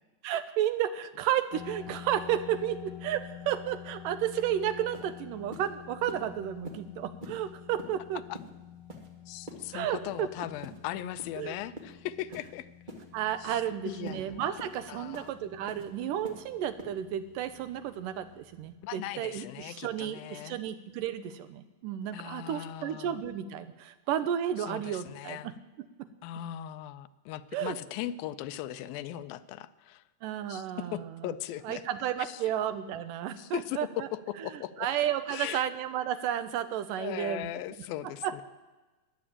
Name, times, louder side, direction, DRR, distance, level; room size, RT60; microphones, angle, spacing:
voice 1, 0.2-8.2 9.7-10.3 11.4-11.5 13.1-25.5 26.0-26.1 27.5-27.8 30.2-31.3 31.6-34.1 34.4-37.5 38.2-38.4, right 10 dB, 80° right, 12 dB, 2.2 m, -32 dB
sound 1, 1.5-18.7, left 10 dB, 60° left, 2.2 m, -49 dB
sound 2, 4.4-4.5 4.9-5.1 5.5-5.7 6.1-6.2 6.6-6.8 7.2-7.4 7.8-7.9 8.3-8.5 8.9-9.1 9.5-9.6 10.0-10.2 10.6-10.8 11.2-11.4 11.8-11.9 12.3-12.5 12.9-13.0 13.5-13.6 14.1-14.2 14.6-14.7 15.1-15.3 15.7-15.8 16.2-16.4 16.8-16.9, right 1 dB, 25° right, 1.1 m, -44 dB
voice 2, 9.3-12.7 13.4-14.6 14.9-15.4 18.8-20.6 22.1-23.2 24.7-25.5 26.2-30.0 30.5-31.8 32.2-32.4 33.4-33.8 34.1-34.9 35.3-35.6 37.0-38.4, left 12 dB, 80° left, 14 dB, 2.4 m, -39 dB
14.0 x 10.5 x 8.7 m, 1.2 s
omnidirectional pair, 4.2 m